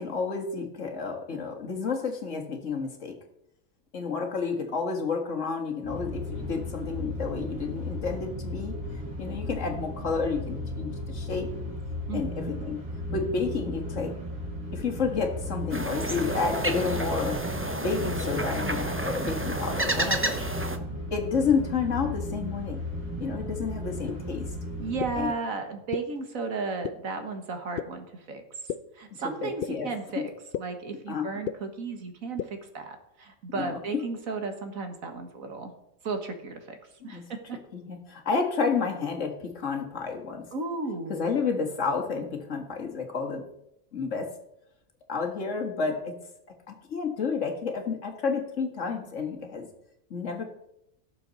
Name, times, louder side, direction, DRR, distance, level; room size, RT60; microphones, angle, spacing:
voice 1, 0.0-3.2 3.9-8.7 9.2-11.5 12.1-12.8 13.1-14.1 14.7-17.4 17.8-20.4 21.1-22.8 23.2-24.5 25.2-25.3 29.4-30.2 31.1-31.3 33.5-33.8 37.0-37.2 37.7-40.4 41.1-43.5 43.9-44.3 45.1-46.1 46.7-49.7 50.1-50.5, left 5 dB, 60° left, 3 dB, 1.9 m, -30 dB
sound 1, 5.8-25.2, left 1 dB, 40° right, 3.9 m, -35 dB
sound 2, 15.7-20.8, right 2 dB, 15° right, 0.5 m, -30 dB
sound 3, 24.1-24.2 25.0-25.1 25.9-26.0 26.8-26.9 27.8-27.9 28.7-28.8 29.6-29.7 30.5-30.6 31.5-31.6 32.4-32.5, left 10 dB, 75° left, 0.5 m, -30 dB
voice 2, 24.8-28.4 29.0-30.3 30.6-35.7 36.0-36.8 37.0-37.2 37.5-37.6 40.5-41.2, right 4 dB, 70° right, 6 dB, 1.9 m, -34 dB
17.0 x 6.9 x 4.0 m, 0.80 s
omnidirectional pair, 1.5 m